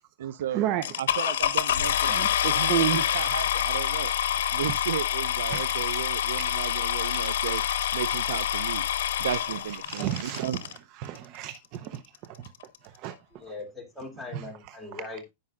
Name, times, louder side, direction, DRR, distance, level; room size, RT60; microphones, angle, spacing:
voice 1, 0.2-0.7 1.0-2.2 2.5-7.6 7.9-8.9 9.2-10.6, right 10 dB, 80° right, 0.4 m, -34 dB
sound 1, 0.8-10.8 11.5-11.6 12.1-12.2 12.4-12.8, left 10 dB, 80° left, 1.1 m, -27 dB
voice 2, 2.1-3.0 4.6-4.7 5.5-5.6 9.9-10.5 11.0-12.0 13.0-13.1, right 11 dB, 35° right, 0.6 m, -30 dB
voice 3, 13.3-15.3, left 3 dB, 5° left, 2.5 m, -40 dB
15.5 x 5.4 x 2.4 m
supercardioid pair, 165°, 0 cm